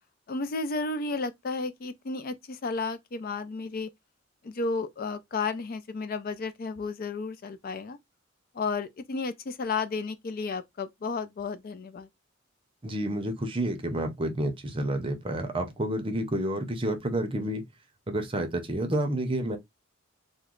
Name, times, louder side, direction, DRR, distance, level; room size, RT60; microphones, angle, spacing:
voice 1, 0.3-3.9 4.4-8.0 8.5-12.1, left 4 dB, 45° left, 0.4 m, -32 dB
voice 2, 12.8-17.6 18.1-19.6, right 1 dB, 25° right, 0.6 m, -29 dB
3.0 x 2.1 x 3.6 m
head